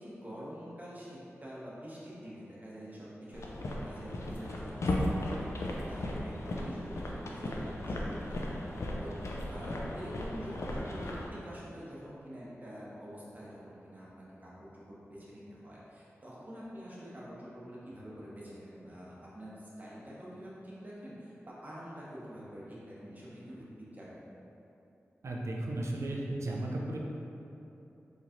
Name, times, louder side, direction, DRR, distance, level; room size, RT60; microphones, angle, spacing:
voice 1, 0.0-8.7 9.0-9.1 9.5-24.2, equal, 35° right, -7 dB, 1.1 m, -46 dB
sound 1, 3.3-11.3, left 1 dB, 70° left, 0.4 m, -36 dB
voice 2, 25.2-27.0, right 1 dB, 70° right, -2 dB, 0.5 m, -35 dB
4.0 x 3.2 x 2.5 m, 2.9 s
cardioid pair, 40°, 5 cm